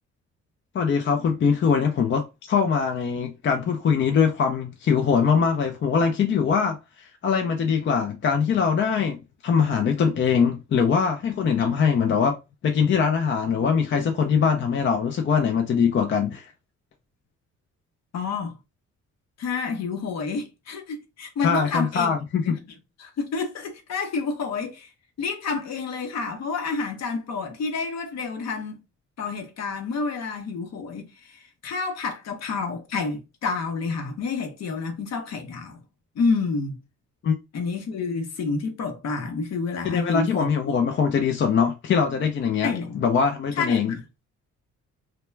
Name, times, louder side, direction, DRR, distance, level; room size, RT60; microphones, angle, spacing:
voice 1, 0.7-9.2 9.4-12.4 12.6-16.5 21.4-22.6 37.2-37.4 39.8-43.9, left 6 dB, 40° left, 0.4 m, -22 dB
voice 2, 18.1-18.6 19.4-22.1 22.5-22.6 23.0-24.9 25.2-28.8 29.2-35.8 36.1-36.8 37.5-40.5 42.6-43.0 43.6-44.0, left 4 dB, 60° left, 0.8 m, -29 dB
2.2 x 2.2 x 3.1 m
cardioid pair, 90°, 30 cm